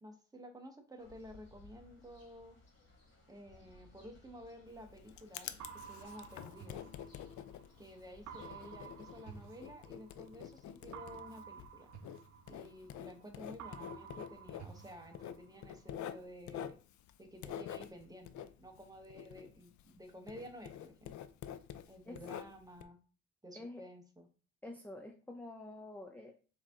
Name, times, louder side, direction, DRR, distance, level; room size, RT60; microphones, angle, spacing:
voice 1, 0.0-2.6 3.3-6.8 7.8-11.9 12.5-16.7 17.2-21.1 21.9-23.0 23.4-24.3, equal, 10° right, 3 dB, 1.0 m, -52 dB
sound 1, 1.0-9.5, left 2 dB, 40° left, 1.7 m, -63 dB
Writing, 4.7-20.0 20.3-22.8, left 10 dB, 70° left, 0.5 m, -47 dB
sound 2, 5.6-7.7 8.3-10.3 10.9-13.2 13.6-15.7, right 7 dB, 65° right, 0.6 m, -52 dB
voice 2, 24.6-26.4, left 2 dB, 5° left, 3 dB, 0.5 m, -48 dB
4.7 x 2.8 x 3.5 m, 0.38 s
cardioid pair, 90°, 30 cm